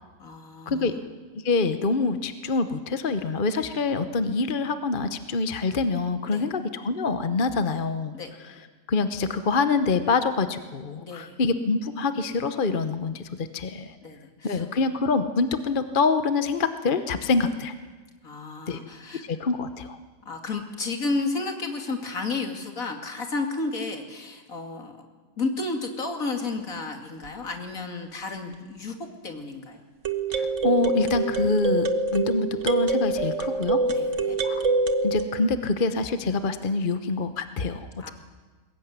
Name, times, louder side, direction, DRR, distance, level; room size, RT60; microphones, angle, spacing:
voice 1, 0.2-1.0 6.3-6.5 8.1-8.3 11.0-11.4 14.0-14.6 18.2-19.2 20.3-25.1 25.4-29.8 33.9-34.4 38.0-38.1, left 3 dB, 55° left, 4 dB, 2.9 m, -32 dB
voice 2, 1.4-8.1 8.4-8.5 8.9-14.0 14.4-17.7 18.7-18.8 19.2-20.0 30.3-33.8 34.4-34.6 35.0-37.9, left 4 dB, 40° left, 10 dB, 0.9 m, -25 dB
sound 1, 27.3-27.4 30.0-35.2, right 3 dB, 50° right, 1.5 m, -25 dB
22.0 x 20.5 x 9.5 m, 1.4 s
omnidirectional pair, 1.7 m